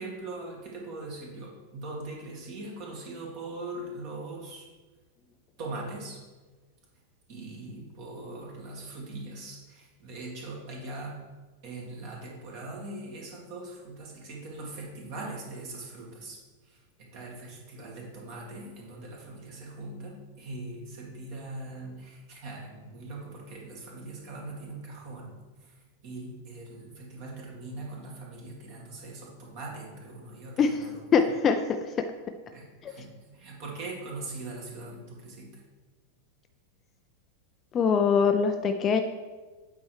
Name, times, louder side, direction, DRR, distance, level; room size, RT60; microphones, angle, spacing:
voice 1, 0.0-4.7 5.6-6.2 7.3-11.2 11.6-16.4 16.7-25.3 26.0-31.3 32.5-35.5, right 2 dB, 45° right, -2 dB, 2.3 m, -41 dB
voice 2, 31.1-31.6 32.8-32.9 37.7-39.0, left 6 dB, 25° left, 6 dB, 0.5 m, -23 dB
8.3 x 4.4 x 4.7 m, 1.3 s
figure-of-eight pair, 90°, 0 cm